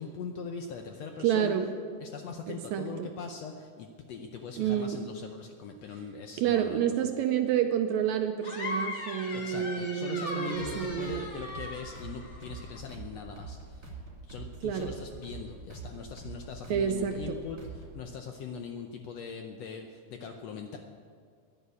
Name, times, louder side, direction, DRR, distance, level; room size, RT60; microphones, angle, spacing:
voice 1, 0.0-1.6 2.0-6.8 9.3-13.9 14.3-20.8, left 5 dB, 75° left, 4 dB, 1.6 m, -41 dB
voice 2, 1.2-1.6 2.5-3.1 4.6-5.0 6.4-11.3 14.6-14.9 16.7-17.4, right 9 dB, 75° right, 6 dB, 1.8 m, -29 dB
sound 1, 8.4-12.8, left 2 dB, 50° left, 0.8 m, -39 dB
sound 2, 10.5-18.1, right 3 dB, 30° right, 3.1 m, -45 dB
11.0 x 10.5 x 8.4 m, 2.1 s
omnidirectional pair, 3.7 m